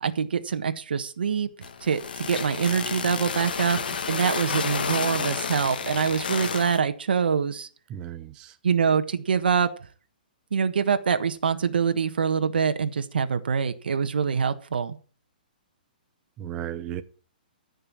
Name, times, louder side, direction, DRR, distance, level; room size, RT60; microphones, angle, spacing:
voice 1, 0.0-1.5 1.8-3.8 4.1-7.7 8.6-9.7 10.5-15.0, right 6 dB, 85° right, 1.5 m, -25 dB
sound 1, 1.6-6.8, left 6 dB, 70° left, 1.7 m, -30 dB
voice 2, 7.9-8.5 16.4-17.0, right 11 dB, 15° right, 0.6 m, -35 dB
14.5 x 5.6 x 8.6 m
hypercardioid pair, 175°, 5 cm